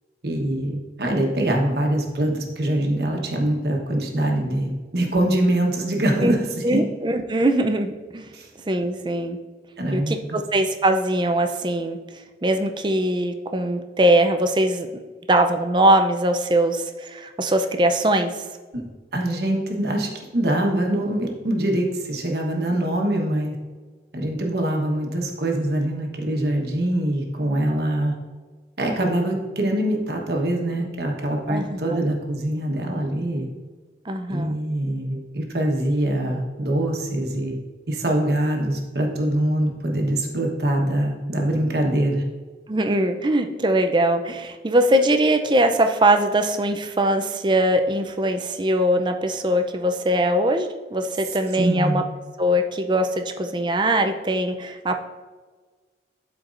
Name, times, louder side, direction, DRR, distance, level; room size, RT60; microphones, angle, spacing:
voice 1, 0.2-6.4 6.7-6.8 8.3-8.5 9.8-10.4 18.7-18.8 19.1-23.5 24.1-28.1 28.8-33.5 34.3-37.6 37.9-42.2 51.5-52.0, right 1 dB, 65° right, 1 dB, 1.2 m, -24 dB
voice 2, 6.2-8.3 8.7-9.4 9.9-12.0 12.4-14.9 15.3-18.4 31.5-32.1 34.1-34.6 42.7-52.0 52.4-55.0, right 1 dB, 25° right, 6 dB, 0.5 m, -21 dB
12.0 x 4.5 x 2.5 m, 1.4 s
head